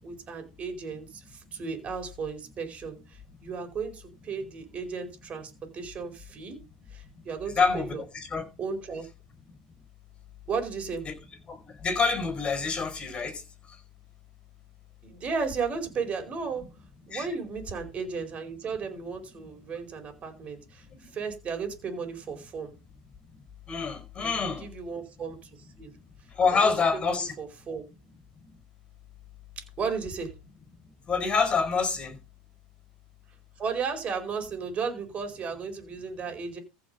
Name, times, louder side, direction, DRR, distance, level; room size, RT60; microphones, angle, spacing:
voice 1, 0.0-6.6 6.9-8.0 8.6-9.1 10.5-11.1 15.0-16.7 17.1-20.8 21.1-22.7 24.2-24.3 24.6-25.5 25.8-25.9 26.6-27.9 29.8-30.3 33.6-36.6, right 5 dB, 30° right, 4.8 m, -34 dB
voice 2, 7.5-8.4 11.0-11.1 11.5-13.4 17.1-17.3 20.9-21.1 23.7-24.7 26.3-27.3 28.4-28.5 31.1-32.2, left 5 dB, 25° left, 5.0 m, -27 dB
15.0 x 5.8 x 5.4 m
supercardioid pair, 115°, 4 cm